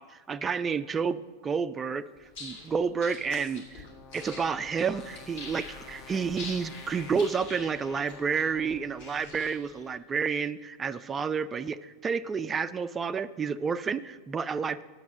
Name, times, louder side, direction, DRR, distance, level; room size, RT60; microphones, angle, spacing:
voice 1, 0.0-2.0 2.4-3.9 4.1-14.8, right 6 dB, 20° right, 12 dB, 0.3 m, -30 dB
sound 1, 2.2-9.8, left 3 dB, 50° left, 2.7 m, -45 dB
sound 2, 2.6-9.7, left 6 dB, 30° left, 0.6 m, -51 dB
9.3 x 7.1 x 6.5 m, 1.3 s
figure-of-eight pair, 90°, 0 cm